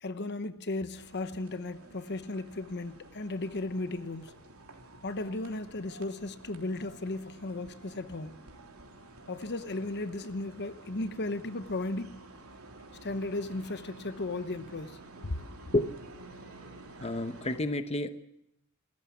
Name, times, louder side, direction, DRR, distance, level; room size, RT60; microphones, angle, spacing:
voice 1, 0.0-4.3 5.0-8.4 9.3-12.2 13.0-15.0 15.2-15.4, left 2 dB, 50° left, 1.0 m, -35 dB
sound 1, 0.9-17.6, right 2 dB, 70° right, 3.4 m, -51 dB
voice 2, 17.0-18.1, left 1 dB, 30° left, 1.0 m, -29 dB
28.0 x 14.0 x 7.2 m
head